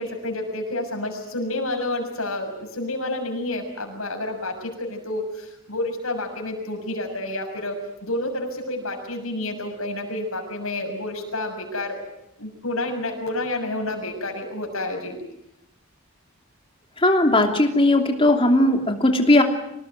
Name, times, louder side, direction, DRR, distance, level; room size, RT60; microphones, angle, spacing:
voice 1, 0.0-12.0 12.4-15.2, left 1 dB, 75° left, 3 dB, 6.8 m, -29 dB
voice 2, 17.0-19.4, left 1 dB, 25° left, 4 dB, 3.0 m, -18 dB
25.5 x 19.0 x 9.4 m, 0.81 s
head